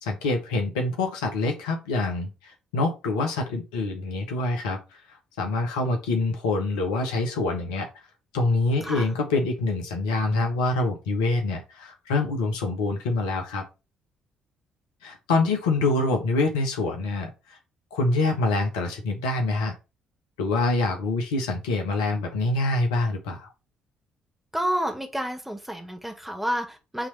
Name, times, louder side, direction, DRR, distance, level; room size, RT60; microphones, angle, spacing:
voice 1, 0.0-5.0 5.4-8.1 8.3-13.6 15.0-17.6 17.9-19.7 20.4-23.5, left 2 dB, 75° left, 1.2 m, -26 dB
voice 2, 24.5-27.1, equal, 5° right, 2.0 m, -29 dB
6.2 x 3.3 x 5.6 m
figure-of-eight pair, 45°, 4 cm